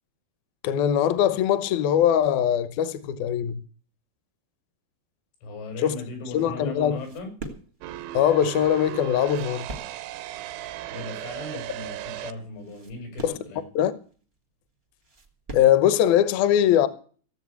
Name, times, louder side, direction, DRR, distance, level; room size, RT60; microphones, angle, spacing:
voice 1, 0.6-3.6 5.8-6.0 6.3-7.0 8.1-9.7 13.2-13.4 13.8-13.9 15.5-16.9, left 10 dB, 70° left, 2.4 m, -21 dB
voice 2, 5.4-7.3 10.9-13.6, left 2 dB, 90° left, 8.3 m, -38 dB
sound 1, 6.6-15.9, right 2 dB, 70° right, 0.5 m, -44 dB
sound 2, 7.8-12.3, right 14 dB, 90° right, 3.5 m, -36 dB
17.0 x 8.0 x 8.2 m
omnidirectional pair, 5.3 m